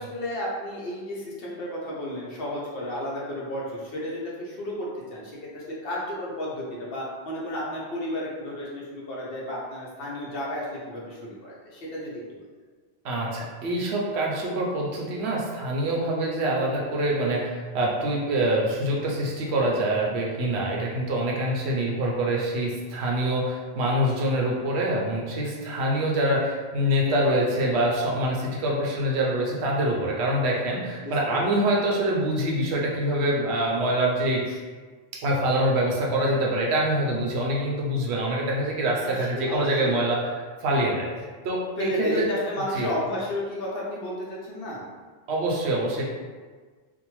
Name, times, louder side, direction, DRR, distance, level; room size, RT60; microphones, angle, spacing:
voice 1, 0.0-12.4 31.0-31.4 39.0-39.9 41.8-44.8, left 1 dB, 65° left, -5 dB, 0.8 m, -32 dB
voice 2, 13.0-34.6 35.1-41.1 41.4-42.2 42.7-42.9 45.3-46.1, right 1 dB, 80° right, -2 dB, 0.8 m, -25 dB
2.6 x 2.1 x 3.0 m, 1.5 s
omnidirectional pair, 1.1 m